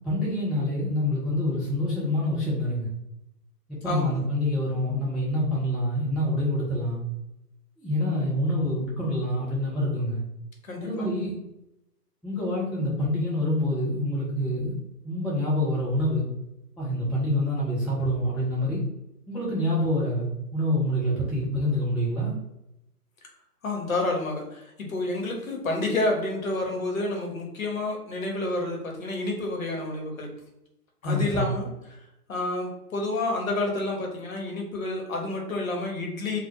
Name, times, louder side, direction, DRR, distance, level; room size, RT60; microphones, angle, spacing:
voice 1, 0.0-2.9 3.8-7.0 7.8-10.2 10.8-11.4 12.2-14.7 15.0-16.3 16.8-18.8 19.3-22.3 31.0-31.5, left 1 dB, ahead, -7 dB, 0.3 m, -26 dB
voice 2, 3.8-4.2 10.6-11.1 23.6-30.3 31.0-32.0 32.3-36.4, left 2 dB, 55° left, 1 dB, 0.8 m, -29 dB
2.2 x 2.1 x 2.8 m, 0.87 s
hypercardioid pair, 165°, 48 cm